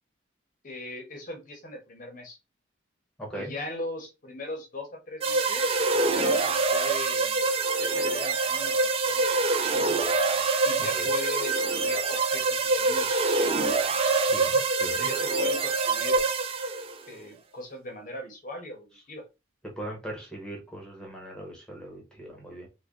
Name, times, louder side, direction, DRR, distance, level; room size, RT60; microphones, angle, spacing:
voice 1, 0.6-2.4 3.3-7.5 7.8-10.0 10.7-13.2 14.9-16.2 17.1-19.2, left 2 dB, 40° left, 0.7 m, -39 dB
voice 2, 3.2-3.5 10.9-11.1 14.3-15.1 19.6-22.7, right 1 dB, 5° left, 1.0 m, -39 dB
sound 1, 5.2-17.0, right 3 dB, 30° right, 0.3 m, -25 dB
3.4 x 2.2 x 3.6 m
head